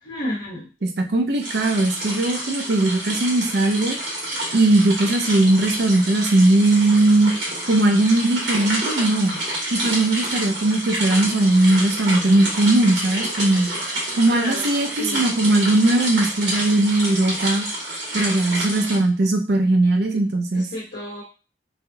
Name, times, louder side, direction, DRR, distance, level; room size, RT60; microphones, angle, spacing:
voice 1, 0.0-0.7 14.3-14.7 15.0-15.3 20.5-21.2, left 1 dB, 85° left, -6 dB, 1.0 m, -31 dB
voice 2, 0.8-4.0 4.5-7.3 7.7-9.4 9.7-13.7 14.2-17.6 18.1-20.7, right 2 dB, 65° right, 3 dB, 0.5 m, -19 dB
sound 1, 1.4-19.0, right 1 dB, 85° right, 1.6 m, -28 dB
3.3 x 2.7 x 2.3 m, 0.34 s
head